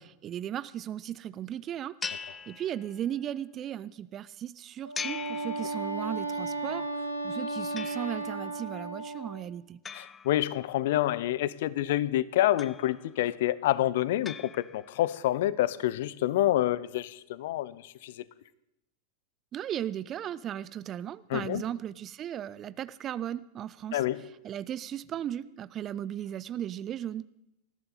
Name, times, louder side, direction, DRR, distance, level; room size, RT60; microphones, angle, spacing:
voice 1, 0.0-9.8 19.5-24.0 24.4-27.3, right 10 dB, 30° right, 17 dB, 0.5 m, -36 dB
sound 1, 2.0-3.2 4.9-6.2 7.8-8.5 9.8-11.0 12.6-13.3 14.2-15.1, left 6 dB, 15° left, 0.6 m, -42 dB
Wind instrument woodwind instrument, 4.8-9.5, right 2 dB, 85° left, 2.2 m, -34 dB
voice 2, 9.9-18.2 21.3-21.6 23.9-24.2, left 13 dB, 55° left, 19 dB, 0.7 m, -28 dB
19.5 x 15.0 x 4.2 m, 0.83 s
figure-of-eight pair, 90°, 0 cm